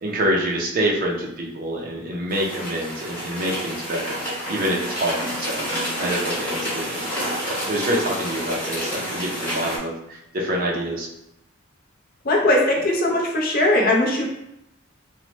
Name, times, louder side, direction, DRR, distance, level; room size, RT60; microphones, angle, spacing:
voice 1, 0.0-4.2 4.5-11.1, right 1 dB, 45° right, -2 dB, 0.5 m, -26 dB
sound 1, 2.3-9.8, equal, 10° left, 1.1 m, -29 dB
voice 2, 12.2-14.2, left 1 dB, 45° left, -1 dB, 0.5 m, -19 dB
3.0 x 2.1 x 3.0 m, 0.82 s
head